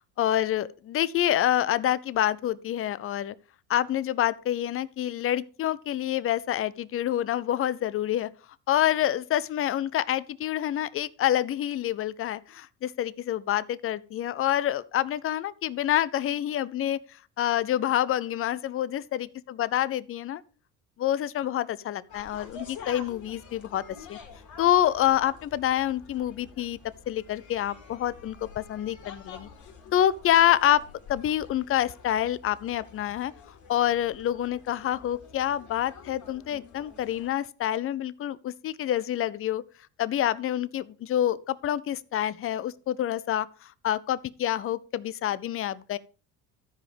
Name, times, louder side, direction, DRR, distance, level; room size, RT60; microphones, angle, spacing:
voice 1, 0.2-3.3 3.7-8.3 8.7-17.0 17.4-20.4 21.0-23.8 24.1-24.2 24.6-26.8 27.1-29.5 29.9-30.8 31.1-33.3 33.7-39.6 40.0-46.0, left 12 dB, 40° left, 0.7 m, -27 dB
sound 1, 22.1-37.3, left 5 dB, 60° left, 3.0 m, -48 dB
13.5 x 5.0 x 5.2 m
supercardioid pair, 100°, 34 cm